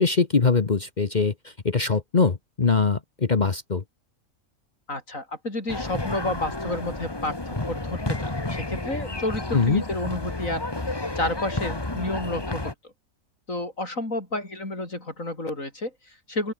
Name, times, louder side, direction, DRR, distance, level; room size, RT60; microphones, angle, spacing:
voice 1, 0.0-3.8 9.5-9.8, left 4 dB, 35° left, 1.2 m, -22 dB
voice 2, 4.9-12.9 13.5-16.5, left 2 dB, 65° left, 6.7 m, -31 dB
sound 1, 5.7-12.7, left 2 dB, 15° left, 1.7 m, -31 dB
open air
omnidirectional pair, 1.5 m